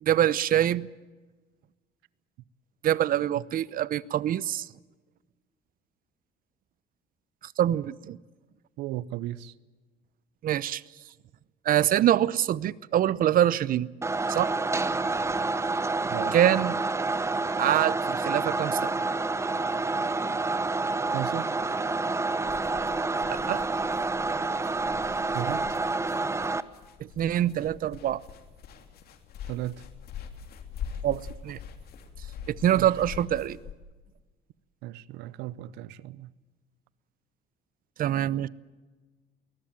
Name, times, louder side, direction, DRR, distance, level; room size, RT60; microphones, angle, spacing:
voice 1, 0.0-0.9 2.8-4.7 7.4-8.2 10.4-10.8 11.6-13.9 14.3-14.5 16.3-16.7 17.6-18.9 23.3-23.6 27.0-28.2 31.0-31.6 32.5-33.6 38.0-38.5, right 11 dB, 55° right, 0.8 m, -25 dB
voice 2, 8.8-9.5 16.1-16.4 21.1-21.5 25.3-25.8 29.5-29.8 32.7-32.9 34.8-36.3, right 15 dB, 90° right, 0.8 m, -35 dB
sound 1, 14.0-26.6, right 3 dB, 15° right, 1.0 m, -28 dB
sound 2, 22.4-33.7, left 7 dB, 65° left, 3.0 m, -43 dB
21.5 x 19.5 x 9.0 m
cardioid pair, 110°, 17 cm